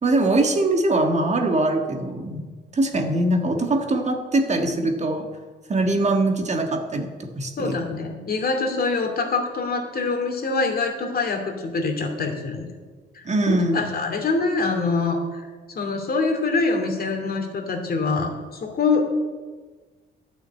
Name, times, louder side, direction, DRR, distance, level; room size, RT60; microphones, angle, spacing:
voice 1, 0.0-2.5 2.7-5.3 5.7-7.8 13.2-13.9, right 2 dB, 35° right, 4 dB, 1.6 m, -22 dB
voice 2, 7.6-12.7 13.5-19.0, left 3 dB, 50° left, 3 dB, 2.5 m, -25 dB
11.5 x 6.3 x 9.2 m, 1.4 s
cardioid pair, 90°, 20 cm